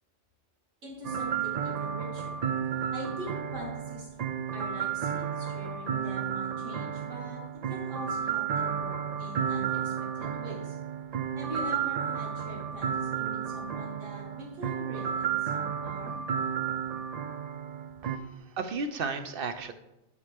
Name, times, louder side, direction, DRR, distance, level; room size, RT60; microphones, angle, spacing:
voice 1, 0.8-2.4 2.9-4.2 4.5-7.4 7.7-10.8 11.4-16.2, equal, 90° right, -3 dB, 2.4 m, -43 dB
sound 1, 1.0-18.2, right 8 dB, 75° right, 0.3 m, -32 dB
voice 2, 18.0-19.7, right 4 dB, 55° right, 9 dB, 0.8 m, -34 dB
10.5 x 6.7 x 3.5 m, 0.90 s
omnidirectional pair, 1.3 m